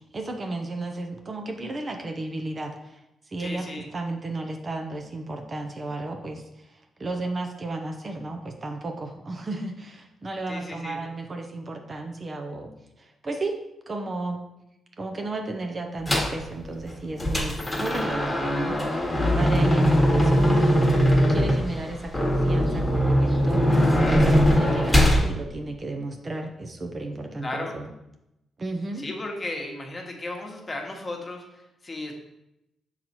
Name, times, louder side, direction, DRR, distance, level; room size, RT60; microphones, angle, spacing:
voice 1, 0.1-3.0 3.3-12.7 13.0-14.4 15.0-20.7 21.3-23.7 24.1-27.9 28.6-29.1, right 2 dB, 35° right, 4 dB, 0.8 m, -33 dB
voice 2, 3.4-3.9 10.5-11.0 27.4-27.7 29.0-32.1, left 2 dB, 30° left, 1 dB, 1.2 m, -35 dB
sound 1, 16.1-16.4 16.9-25.2, equal, 10° left, 1.4 m, -21 dB
6.0 x 4.1 x 4.4 m, 0.89 s
cardioid pair, 80°, 0 cm